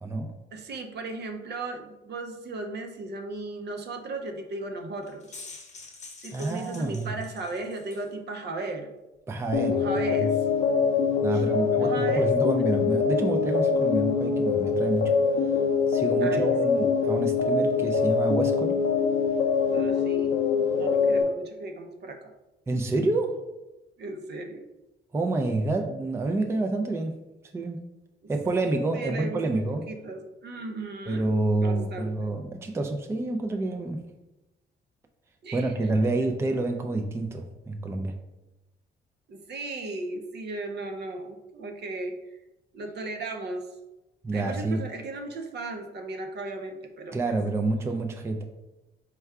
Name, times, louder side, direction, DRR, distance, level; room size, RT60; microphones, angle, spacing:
voice 1, 0.0-0.3 6.3-7.2 9.3-9.8 10.2-10.3 11.2-15.1 15.9-18.8 22.7-23.4 25.1-27.1 27.5-27.8 28.3-29.8 31.1-34.0 35.5-38.1 44.2-44.8 47.1-48.4, right 2 dB, 15° right, 3 dB, 0.4 m, -28 dB
voice 2, 0.5-5.4 6.2-8.9 9.7-10.4 11.3-12.3 16.2-16.8 19.7-20.4 20.7-22.3 24.0-24.7 28.2-28.3 28.9-31.3 31.6-32.3 35.4-35.7 39.3-42.1 42.7-43.7 44.3-47.3, right 2 dB, 60° right, 4 dB, 0.6 m, -36 dB
sound 1, 5.0-8.1, left 3 dB, 35° left, 0.8 m, -46 dB
sound 2, 9.5-21.2, left 5 dB, 75° left, 0.6 m, -24 dB
4.3 x 2.3 x 3.5 m, 0.99 s
cardioid pair, 90°, 20 cm